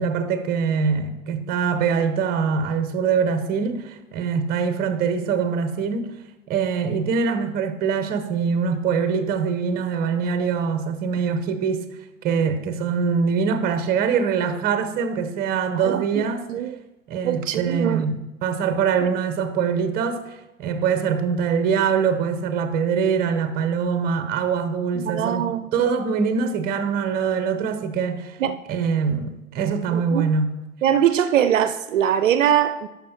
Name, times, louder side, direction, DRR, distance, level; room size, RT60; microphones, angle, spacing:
voice 1, 0.0-6.1 6.5-11.9 12.2-16.5 17.1-20.3 20.6-28.4 28.7-30.6, right 6 dB, 20° right, 0.7 m, -23 dB
voice 2, 15.8-16.8 17.2-18.1 25.0-25.7 28.4-28.6 29.9-30.3 30.8-32.9, right 10 dB, 65° right, 0.5 m, -22 dB
11.5 x 5.8 x 2.9 m
figure-of-eight pair, 100°, 41 cm